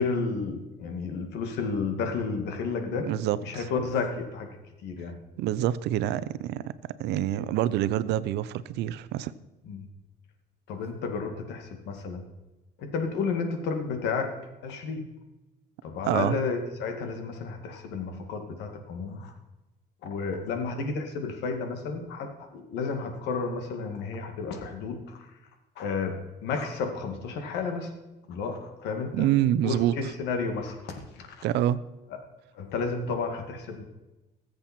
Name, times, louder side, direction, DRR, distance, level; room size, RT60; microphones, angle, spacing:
voice 1, 0.0-3.1 3.4-4.6 4.8-5.1 9.7-9.9 10.7-12.2 12.8-14.3 14.6-15.0 15.8-19.3 20.0-25.2 25.8-26.2 26.4-27.9 28.3-29.3 29.6-31.4 32.5-33.8, left 4 dB, 85° left, 5 dB, 2.2 m, -32 dB
voice 2, 3.0-3.6 5.4-6.7 7.0-9.3 16.0-16.4 29.1-29.9 31.4-31.8, right 12 dB, 80° right, 16 dB, 0.7 m, -26 dB
20.0 x 7.7 x 4.4 m, 1.1 s
cardioid pair, 110°, 17 cm